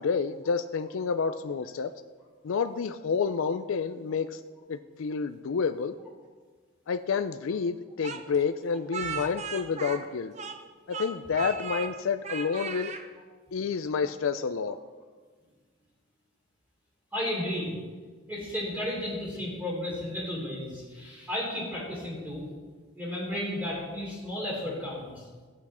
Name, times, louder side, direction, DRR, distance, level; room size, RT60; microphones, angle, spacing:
voice 1, 0.0-1.9 2.4-4.4 4.7-5.9 6.9-10.3 10.9-12.9 13.5-14.8, left 5 dB, 75° left, 10 dB, 0.4 m, -29 dB
Speech, 8.0-10.7 10.9-11.9 12.2-13.0, right 6 dB, 35° right, 0.7 m, -36 dB
voice 2, 17.1-17.7 18.3-22.4 22.9-25.3, left 1 dB, 10° right, -5 dB, 3.0 m, -33 dB
14.0 x 8.3 x 4.3 m, 1.5 s
head